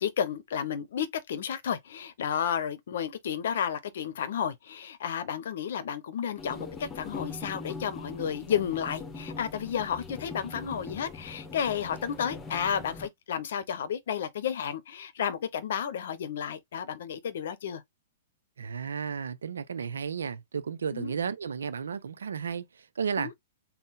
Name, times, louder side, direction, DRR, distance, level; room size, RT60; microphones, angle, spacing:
voice 1, 0.0-17.8 20.9-21.1 23.2-23.3, left 8 dB, 65° left, 0.7 m, -32 dB
sound 1, 6.4-13.1, left 3 dB, 20° left, 0.9 m, -42 dB
voice 2, 18.6-23.3, right 6 dB, 75° right, 0.5 m, -33 dB
3.7 x 2.0 x 4.0 m
figure-of-eight pair, 110°, 0 cm